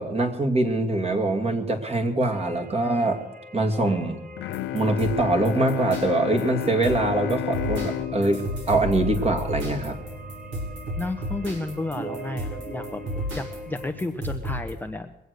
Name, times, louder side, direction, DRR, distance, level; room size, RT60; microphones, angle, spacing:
voice 1, 0.0-3.2 3.5-4.2 4.7-10.0, right 2 dB, 30° right, 4 dB, 2.4 m, -23 dB
sound 1, 2.3-13.9, equal, 45° right, 4.5 m, -44 dB
Bowed string instrument, 4.4-10.0, left 13 dB, 80° left, 0.4 m, -32 dB
sound 2, 4.5-14.7, equal, 75° right, 5.0 m, -34 dB
voice 2, 11.0-13.0 13.3-15.1, left 2 dB, 10° left, 5 dB, 0.8 m, -32 dB
22.0 x 8.1 x 6.6 m, 0.98 s
cardioid pair, 90°, 20 cm